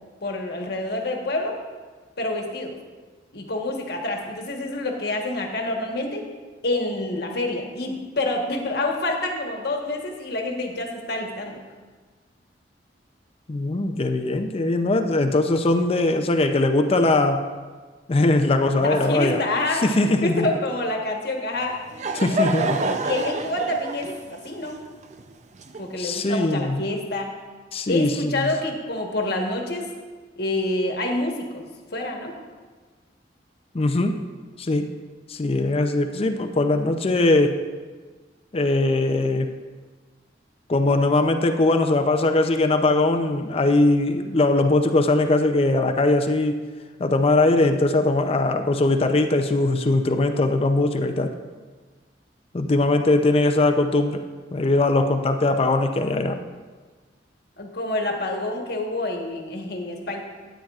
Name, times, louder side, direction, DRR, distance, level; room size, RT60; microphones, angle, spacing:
voice 1, 0.2-1.6 2.2-2.7 3.3-6.2 6.6-11.6 18.8-19.9 20.2-21.8 23.0-24.1 24.4-24.8 25.8-27.3 27.9-29.9 30.4-31.7 31.9-32.3 57.6-60.2, left 2 dB, 65° left, 2 dB, 1.2 m, -27 dB
voice 2, 13.5-17.5 18.1-19.4 19.7-20.5 22.1-22.9 26.0-26.8 27.7-28.5 33.7-34.2 34.6-34.9 35.3-37.6 38.5-39.5 40.7-46.6 47.0-51.3 52.5-54.2 54.5-56.4, left 2 dB, 35° left, 6 dB, 0.5 m, -21 dB
Laughter / Crowd, 21.6-26.3, right 2 dB, 40° right, 0.5 m, -28 dB
13.0 x 9.2 x 2.4 m, 1.4 s
head